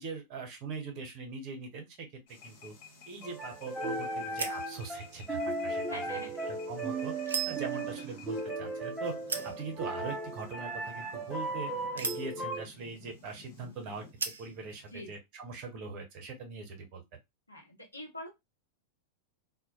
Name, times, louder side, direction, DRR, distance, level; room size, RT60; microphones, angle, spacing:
voice 1, 0.0-2.8 3.1-6.2 6.7-9.1 9.4-14.0 14.4-17.0, right 4 dB, 40° right, 3 dB, 0.8 m, -42 dB
sound 1, 2.3-14.1, left 8 dB, 50° left, 0.6 m, -54 dB
sound 2, 2.4-15.1, right 5 dB, 70° right, 0.3 m, -43 dB
sound 3, 3.2-12.6, right 2 dB, 10° right, 0.5 m, -36 dB
voice 2, 5.9-6.5 7.7-8.1 14.9-15.1 17.5-18.3, left 1 dB, 85° left, 1 dB, 0.8 m, -45 dB
2.1 x 2.0 x 2.9 m, 0.20 s
figure-of-eight pair, 90°, 0 cm